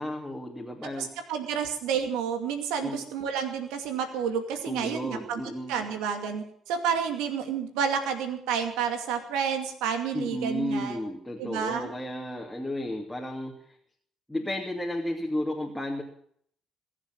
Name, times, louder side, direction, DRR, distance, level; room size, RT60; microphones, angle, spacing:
voice 1, 0.0-1.2 1.5-1.6 2.8-3.0 4.6-5.8 10.1-13.8 14.3-16.0, left 1 dB, 5° left, -1 dB, 2.8 m, -33 dB
voice 2, 1.0-5.4 5.7-11.0 11.4-11.9, right 7 dB, 85° right, 6 dB, 2.4 m, -30 dB
21.5 x 7.5 x 7.7 m, 0.63 s
supercardioid pair, 70°, 0 cm